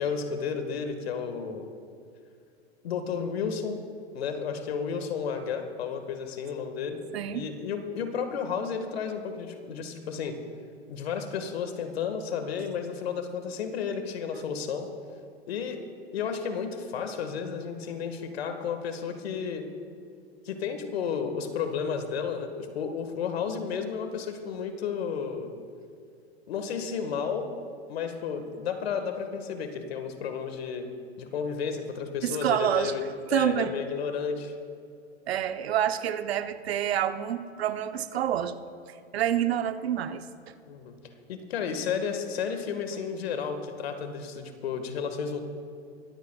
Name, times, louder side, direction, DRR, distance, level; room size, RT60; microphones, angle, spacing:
voice 1, 0.0-1.7 2.8-3.8 4.1-7.0 7.3-10.4 10.9-14.9 15.5-15.8 16.1-19.6 20.4-25.5 26.5-27.5 27.9-30.9 31.2-33.0 33.3-34.5 40.7-41.0 41.3-45.4, left 6 dB, 70° left, 7 dB, 1.7 m, -32 dB
voice 2, 7.1-7.4 32.2-32.9 33.3-33.7 35.3-38.5 39.1-40.5, right 10 dB, 70° right, 11 dB, 0.9 m, -28 dB
22.0 x 14.5 x 2.3 m, 2.3 s
hypercardioid pair, 105°, 32 cm